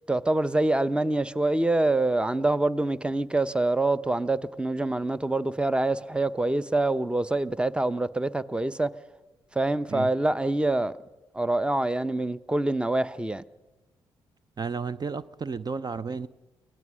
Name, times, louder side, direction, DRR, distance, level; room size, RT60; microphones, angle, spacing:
voice 1, 0.1-8.9 9.5-11.0 11.3-13.4, right 2 dB, 10° right, 0.8 m, -25 dB
voice 2, 14.6-16.3, right 5 dB, 35° right, 0.6 m, -32 dB
24.5 x 17.5 x 6.3 m
hypercardioid pair, 45°, 11 cm